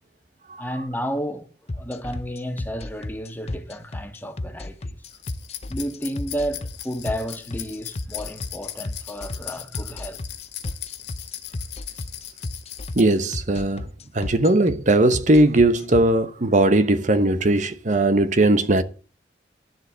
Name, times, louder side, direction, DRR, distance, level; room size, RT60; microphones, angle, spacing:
voice 1, 0.6-1.5 1.7-5.0 5.7-10.2, equal, 10° left, 1.6 m, -32 dB
sound 1, 1.7-16.0, left 2 dB, 35° left, 0.7 m, -32 dB
sound 2, 5.0-13.0, left 11 dB, 75° left, 1.9 m, -38 dB
voice 2, 13.0-13.9 14.1-18.8, right 2 dB, 45° right, 1.0 m, -18 dB
12.0 x 7.3 x 8.2 m
head